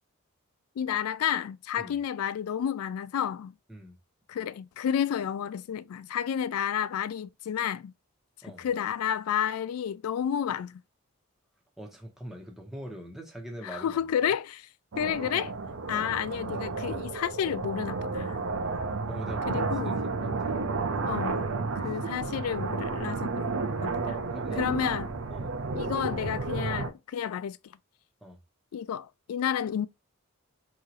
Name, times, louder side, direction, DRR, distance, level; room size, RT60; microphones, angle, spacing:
voice 1, 0.8-3.5 4.3-7.9 8.4-10.8 13.6-14.7 15.0-15.5 15.9-18.4 19.5-19.9 21.1-21.4 21.8-23.5 23.8-24.2 24.6-25.1 25.7-27.6 28.7-29.9, left 9 dB, 90° left, 0.3 m, -31 dB
voice 2, 11.8-14.0 15.0-15.2 15.9-16.1 19.1-19.7 20.2-20.6 21.8-21.9 24.0-24.7 25.3-25.5 28.2-28.4, right 1 dB, ahead, 1.0 m, -42 dB
sound 1, 14.9-26.9, right 3 dB, 70° right, 0.7 m, -32 dB
4.7 x 3.0 x 2.5 m
head